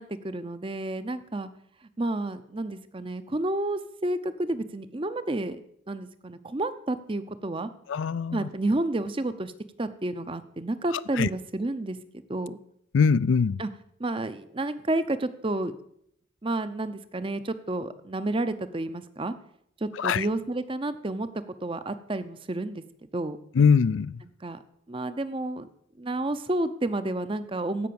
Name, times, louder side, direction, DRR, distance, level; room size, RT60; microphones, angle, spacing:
voice 1, 0.0-1.5 2.0-5.6 5.9-7.7 8.3-9.5 9.8-12.0 12.3-12.6 13.6-13.7 14.0-15.7 16.4-19.3 19.8-21.3 21.6-22.8 23.1-23.4 24.4-24.6 24.9-25.7 26.0-27.9, right 2 dB, 25° right, 0.6 m, -30 dB
voice 2, 7.9-8.5 10.9-11.3 12.9-13.6 20.0-20.3 23.5-24.2, left 6 dB, 65° left, 0.4 m, -22 dB
15.5 x 5.8 x 6.9 m
head